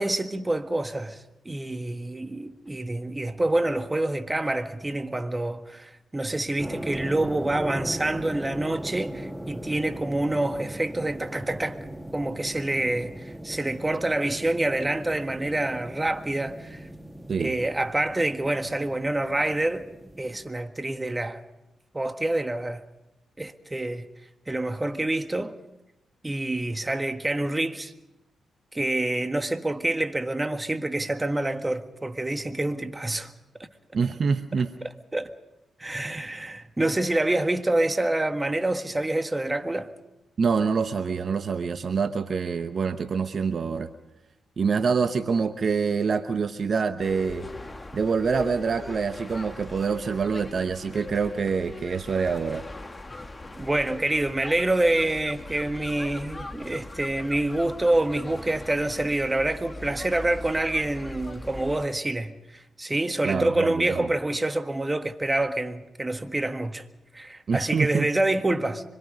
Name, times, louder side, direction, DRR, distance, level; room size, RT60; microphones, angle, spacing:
voice 1, 0.0-11.8 12.1-16.9 17.4-19.9 20.2-21.4 21.9-22.8 23.4-24.1 24.5-25.6 26.2-27.9 28.7-33.3 33.6-33.7 35.1-35.3 35.8-39.9 53.6-66.8 67.1-68.8, right 1 dB, 20° right, 1.7 m, -27 dB
sound 1, 6.6-20.5, right 1 dB, 5° right, 1.5 m, -38 dB
voice 2, 33.9-34.7 40.4-43.9 44.6-47.5 47.9-52.6 63.2-64.1 67.5-68.1, right 5 dB, 55° right, 0.9 m, -26 dB
sound 2, 47.0-61.9, left 2 dB, 30° left, 1.7 m, -40 dB
25.0 x 22.5 x 5.3 m
hypercardioid pair, 40°, 0 cm